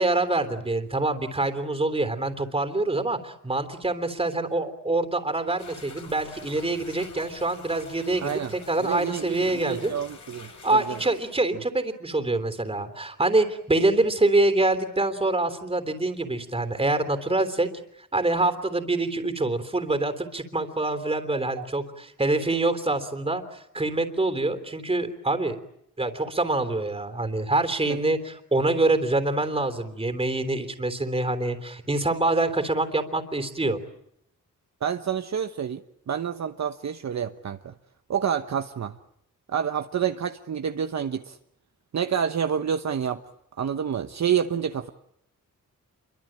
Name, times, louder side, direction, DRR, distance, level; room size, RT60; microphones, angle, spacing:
voice 1, 0.0-9.9 10.6-17.7 18.1-25.6 26.0-33.8, right 2 dB, 20° right, 9 dB, 3.4 m, -25 dB
sound 1, 5.6-11.3, left 4 dB, 60° left, 6.4 m, -46 dB
voice 2, 8.2-8.5 8.8-11.0 21.6-21.7 27.9-28.0 34.8-35.8 36.1-37.7 38.1-39.0 39.5-41.4 41.9-43.2 43.6-44.9, right 8 dB, 55° right, 7 dB, 1.1 m, -28 dB
28.0 x 23.5 x 8.9 m, 0.75 s
wide cardioid pair, 125°, 32 cm